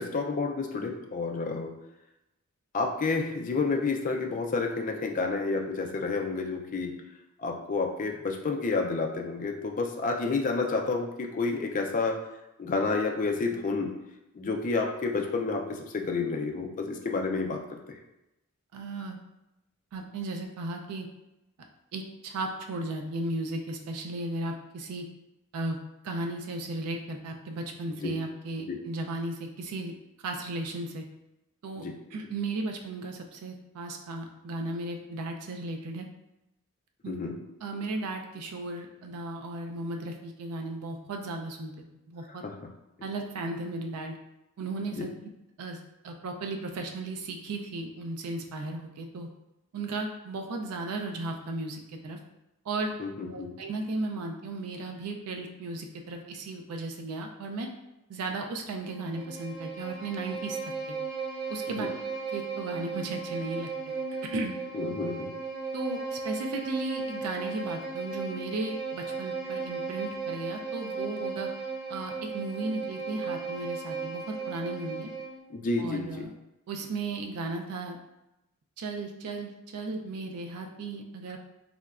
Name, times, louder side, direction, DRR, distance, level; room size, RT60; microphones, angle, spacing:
voice 1, 0.0-1.7 2.7-6.9 7.4-12.1 12.6-13.9 14.3-18.0 28.0-28.1 28.7-28.8 31.8-31.9 37.1-37.3 42.3-42.6 44.9-45.1 53.0-53.5 61.8-61.9 64.7-65.3 75.5-76.3, left 4 dB, 35° left, 3 dB, 0.3 m, -30 dB
voice 2, 18.7-19.2 19.9-21.1 21.9-25.0 25.5-25.8 26.0-29.9 30.2-31.0 31.6-31.8 32.1-36.1 37.0-37.2 37.6-41.7 42.1-42.4 43.0-44.1 44.6-45.1 45.6-49.3 49.7-52.2 52.7-52.9 53.3-57.7 58.1-60.6 60.9-61.0 61.5-61.9 62.3-63.7 64.3-64.6 65.7-71.5 71.9-75.1 75.8-76.3 76.7-78.0 78.8-81.4, right 2 dB, 90° right, 3 dB, 0.4 m, -35 dB
Bowed string instrument, 58.8-75.4, right 4 dB, 15° right, 1.0 m, -36 dB
3.7 x 2.1 x 2.3 m, 0.92 s
head